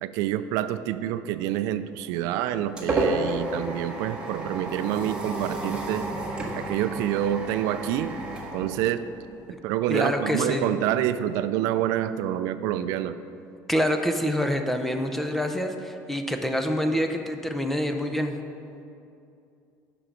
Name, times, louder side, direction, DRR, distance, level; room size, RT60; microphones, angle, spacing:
voice 1, 0.0-6.1 6.6-8.1 8.5-9.0 9.6-13.1, right 11 dB, 70° right, 12 dB, 0.4 m, -27 dB
sound 1, 2.0-9.4, right 2 dB, 15° right, 1.2 m, -32 dB
voice 2, 9.9-10.7 13.7-18.4, equal, 5° left, 6 dB, 0.5 m, -26 dB
11.0 x 6.0 x 5.2 m, 2.6 s
cardioid pair, 160°, 6 cm